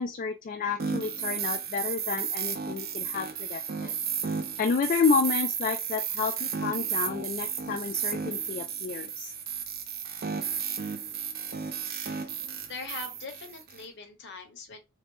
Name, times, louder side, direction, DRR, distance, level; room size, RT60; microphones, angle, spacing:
voice 1, 0.0-3.9 4.3-9.3, left 5 dB, 40° left, 0.3 m, -30 dB
sound 1, 0.8-13.8, right 7 dB, 50° right, 0.5 m, -33 dB
voice 2, 11.8-12.3 12.7-14.8, left 3 dB, 60° left, 0.9 m, -42 dB
3.1 x 2.0 x 3.1 m
head